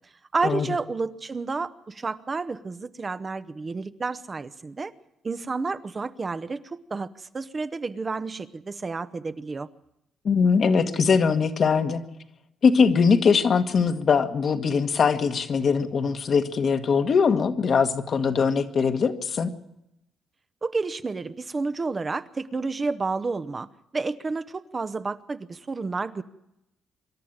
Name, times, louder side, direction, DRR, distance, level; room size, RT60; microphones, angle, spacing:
voice 1, 0.3-4.9 5.2-9.7 20.6-23.7 23.9-26.2, right 4 dB, 30° right, 12 dB, 0.8 m, -30 dB
voice 2, 10.2-12.0 12.6-19.5, left 5 dB, 50° left, 7 dB, 1.5 m, -21 dB
25.5 x 11.5 x 8.8 m, 0.85 s
cardioid pair, 90°, 0 cm